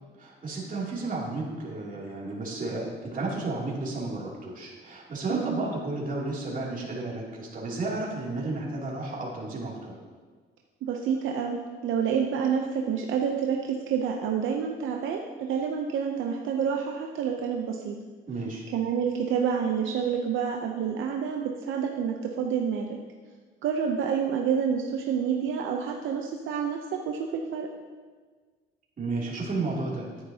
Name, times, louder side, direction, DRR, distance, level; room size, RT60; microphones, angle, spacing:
voice 1, 0.2-10.0 18.3-18.6 29.0-30.1, right 2 dB, 45° right, -4 dB, 2.8 m, -32 dB
voice 2, 5.3-5.6 10.9-18.0 18.7-22.9 23.6-27.7, right 7 dB, 80° right, 1 dB, 0.7 m, -28 dB
10.5 x 9.5 x 2.8 m, 1.5 s
cardioid pair, 90°, 20 cm